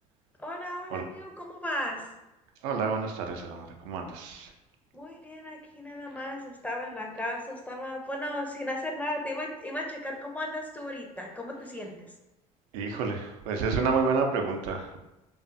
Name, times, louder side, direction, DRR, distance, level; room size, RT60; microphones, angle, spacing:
voice 1, 0.4-2.0 4.9-12.0, left 1 dB, 10° left, 0 dB, 0.6 m, -35 dB
voice 2, 2.6-4.5 12.7-15.0, right 4 dB, 80° right, 3 dB, 0.4 m, -29 dB
2.4 x 2.4 x 2.5 m, 0.97 s
hypercardioid pair, 65°, 18 cm